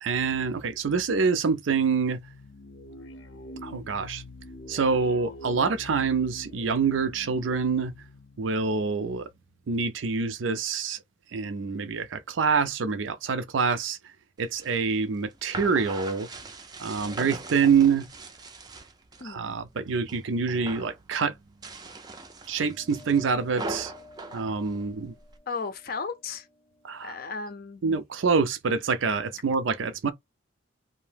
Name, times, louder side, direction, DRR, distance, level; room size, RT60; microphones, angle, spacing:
voice 1, 0.0-2.2 3.6-4.2 4.7-7.9 8.4-9.3 9.7-11.0 11.3-14.0 14.4-16.3 16.8-18.1 19.2-21.3 22.5-23.9 24.3-25.1 26.8-27.1 27.8-30.1, right 5 dB, 80° right, 0.4 m, -26 dB
sound 1, 2.2-9.4, left 1 dB, 90° left, 0.6 m, -45 dB
sound 2, 14.4-19.3 19.7-20.2 20.5-21.0 21.5-25.4, right 3 dB, 20° right, 0.4 m, -40 dB
voice 2, 19.2-19.6 25.5-26.5 27.0-27.8, left 4 dB, 50° left, 0.5 m, -35 dB
sound 3, 22.6-27.4, left 1 dB, 5° left, 0.8 m, -52 dB
2.7 x 2.0 x 3.3 m
head